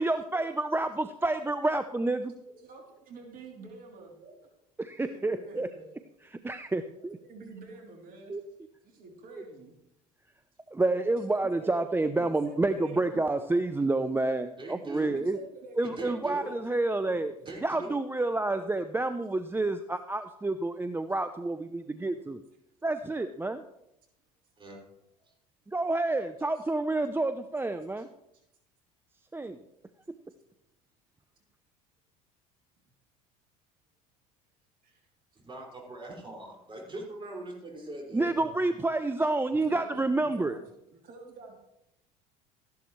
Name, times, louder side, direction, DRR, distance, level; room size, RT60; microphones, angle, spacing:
voice 1, 0.0-2.3 4.8-5.7 6.3-7.2 8.3-8.4 10.7-15.4 15.8-17.3 17.6-22.4 22.8-23.6 25.7-28.1 29.3-29.6 38.1-40.6, right 2 dB, 10° right, 10 dB, 0.6 m, -29 dB
voice 2, 2.5-4.4 4.8-5.9 6.9-8.4 8.8-9.7 11.0-11.8 12.2-13.7 15.1-17.5 26.5-26.6 28.0-28.1 34.8-35.0 38.2-38.6 39.6-41.6, right 3 dB, 50° right, 0 dB, 3.3 m, -48 dB
voice 3, 14.6-15.1 15.8-16.5 17.4-18.0 24.6-24.8 25.2-25.3 35.4-38.3, right 2 dB, 25° right, -2 dB, 5.5 m, -41 dB
14.0 x 11.5 x 3.2 m, 0.82 s
hypercardioid pair, 75°, 18 cm